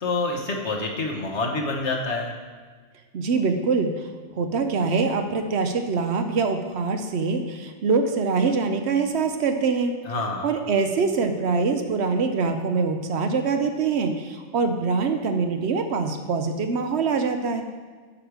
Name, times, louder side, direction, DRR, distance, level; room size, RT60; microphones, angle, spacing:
voice 1, 0.0-2.3 10.1-10.5, left 3 dB, 70° left, 1 dB, 1.5 m, -27 dB
voice 2, 3.1-4.0 4.3-10.0 10.4-17.6, right 4 dB, 70° right, 7 dB, 0.9 m, -24 dB
8.6 x 6.5 x 4.7 m, 1.5 s
omnidirectional pair, 1.2 m